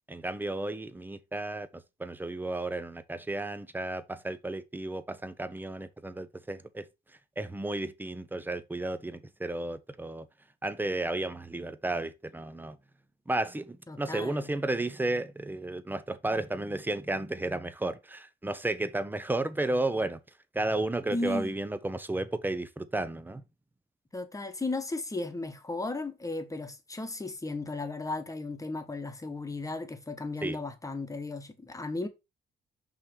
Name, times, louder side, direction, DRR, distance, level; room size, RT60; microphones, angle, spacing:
voice 1, 0.1-6.9 7.4-10.3 10.6-12.8 13.3-20.2 20.5-23.4 30.4-30.6, right 2 dB, 10° right, 0.7 m, -33 dB
voice 2, 13.9-14.5 21.1-21.5 24.1-32.1, left 2 dB, 15° left, 1.3 m, -35 dB
5.6 x 3.3 x 5.2 m
cardioid pair, 90°, 20 cm